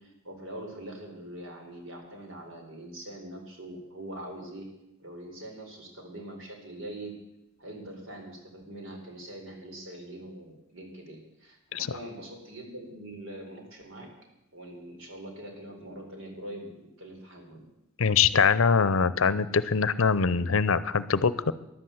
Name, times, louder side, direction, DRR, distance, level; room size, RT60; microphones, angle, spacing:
voice 1, 0.0-4.7 5.0-7.2 7.6-14.1 14.5-17.7, right 1 dB, 65° right, 3 dB, 4.0 m, -43 dB
voice 2, 18.0-21.5, left 5 dB, 75° left, 16 dB, 0.7 m, -23 dB
13.5 x 11.0 x 7.9 m, 0.90 s
head